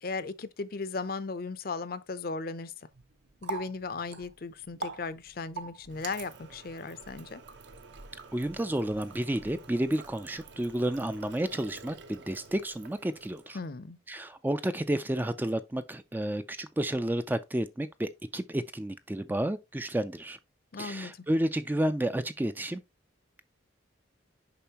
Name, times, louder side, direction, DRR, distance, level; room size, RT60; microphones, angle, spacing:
voice 1, 0.0-2.7 3.4-7.4 13.5-14.0 20.7-21.2, left 4 dB, 50° left, 0.5 m, -36 dB
Water tap faucet, 2.9-13.7, right 3 dB, 65° right, 0.9 m, -46 dB
voice 2, 8.3-13.6 14.1-20.4 20.8-22.8, right 1 dB, 10° right, 0.3 m, -31 dB
6.8 x 5.2 x 2.9 m
head